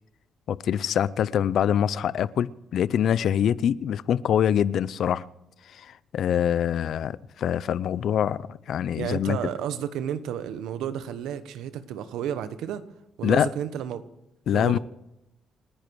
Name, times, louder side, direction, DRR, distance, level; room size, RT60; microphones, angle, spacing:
voice 1, 0.5-5.3 5.7-9.4 13.2-13.5 14.5-14.8, left 9 dB, 65° left, 0.5 m, -24 dB
voice 2, 9.0-12.8 13.2-14.1 14.5-14.8, right 9 dB, 85° right, 1.2 m, -32 dB
29.0 x 10.5 x 4.8 m
cardioid pair, 90°, 0 cm